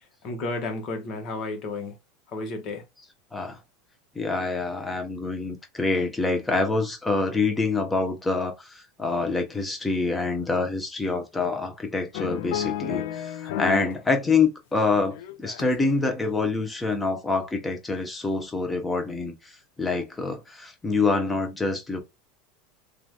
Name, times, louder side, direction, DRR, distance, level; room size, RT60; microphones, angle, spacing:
voice 1, 0.2-1.9 2.3-2.8, left 2 dB, 45° left, 1.4 m, -32 dB
voice 2, 4.1-19.3 19.8-22.0, left 3 dB, 10° left, 1.0 m, -26 dB
sound 1, 12.1-14.0 14.3-15.9 16.4-16.6, left 11 dB, 70° left, 0.4 m, -32 dB
3.1 x 2.6 x 2.3 m
supercardioid pair, 110°, 0 cm